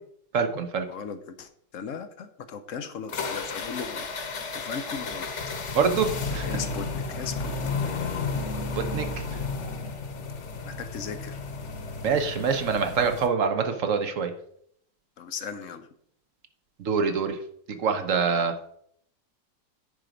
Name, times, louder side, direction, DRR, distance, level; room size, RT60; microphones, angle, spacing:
voice 1, 0.3-0.9 5.7-6.5 8.8-9.4 12.0-14.3 16.8-17.4 17.7-18.8, right 5 dB, 55° right, 8 dB, 1.1 m, -25 dB
voice 2, 0.9-5.3 6.4-7.7 10.6-11.4 15.2-15.9, left 6 dB, 60° left, 9 dB, 0.8 m, -38 dB
sound 1, 3.1-13.3, left 4 dB, 45° left, 1.1 m, -33 dB
10.0 x 4.6 x 5.1 m, 0.67 s
omnidirectional pair, 2.0 m